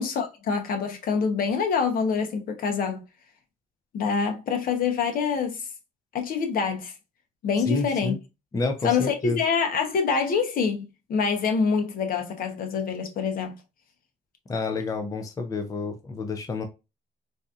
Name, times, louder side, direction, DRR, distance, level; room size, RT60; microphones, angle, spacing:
voice 1, 0.0-3.0 3.9-5.7 6.1-6.9 7.4-8.1 8.8-13.5, left 5 dB, 55° left, 0.9 m, -26 dB
voice 2, 7.7-8.2 8.5-9.4 14.5-16.6, left 3 dB, 20° left, 0.5 m, -29 dB
4.0 x 2.7 x 2.4 m
cardioid pair, 110°, 17 cm